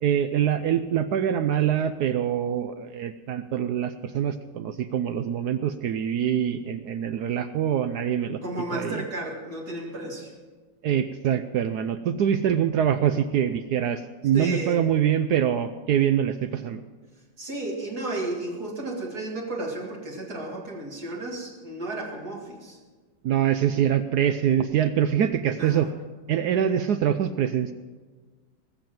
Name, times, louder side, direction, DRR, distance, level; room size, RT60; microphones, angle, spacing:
voice 1, 0.0-8.4 8.7-9.0 10.8-16.8 23.2-25.9 26.3-27.7, right 9 dB, 75° right, 11 dB, 0.9 m, -24 dB
voice 2, 8.4-10.3 14.3-14.8 17.4-22.8 25.6-25.9, right 2 dB, 55° right, -1 dB, 2.4 m, -33 dB
19.5 x 7.1 x 7.6 m, 1.4 s
omnidirectional pair, 2.2 m